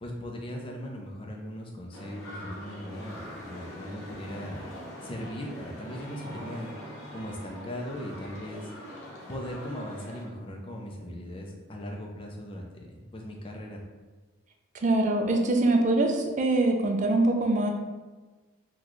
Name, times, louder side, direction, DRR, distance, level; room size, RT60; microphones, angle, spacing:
voice 1, 0.0-4.7 5.0-6.7 7.1-8.9 9.3-13.8, equal, 25° left, 0 dB, 0.4 m, -39 dB
sound 1, 1.9-10.3, equal, 75° left, 0.8 m, -43 dB
voice 2, 14.8-17.7, right 2 dB, 35° right, 3 dB, 0.4 m, -23 dB
3.8 x 2.3 x 3.0 m, 1.3 s
head